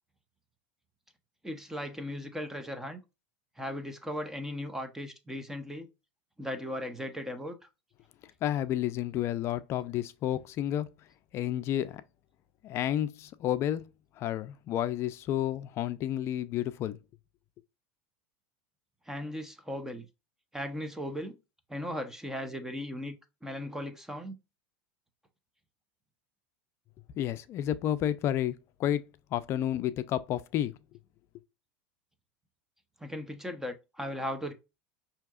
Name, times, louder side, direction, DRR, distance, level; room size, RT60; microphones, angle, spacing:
voice 1, 1.4-3.0 3.6-5.9 6.4-7.6 19.1-20.0 20.5-21.4 21.7-23.2 23.4-24.4 33.0-34.5, equal, 5° right, 0.7 m, -37 dB
voice 2, 8.4-10.9 11.3-12.0 12.6-13.9 14.2-17.0 27.2-30.8, left 11 dB, 45° left, 0.4 m, -31 dB
5.7 x 2.8 x 2.4 m
supercardioid pair, 115°, 6 cm